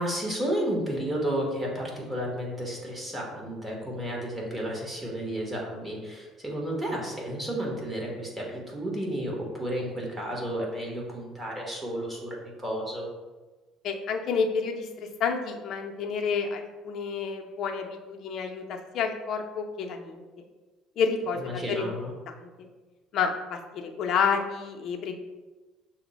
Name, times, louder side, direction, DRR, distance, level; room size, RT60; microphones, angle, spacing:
voice 1, 0.0-13.1 21.4-22.1, right 1 dB, 15° right, -2 dB, 1.1 m, -32 dB
voice 2, 13.8-20.2 21.0-21.9 22.3-22.7 23.1-25.2, left 5 dB, 55° left, 3 dB, 0.5 m, -30 dB
5.9 x 2.1 x 4.0 m, 1.2 s
cardioid pair, 130°, 0 cm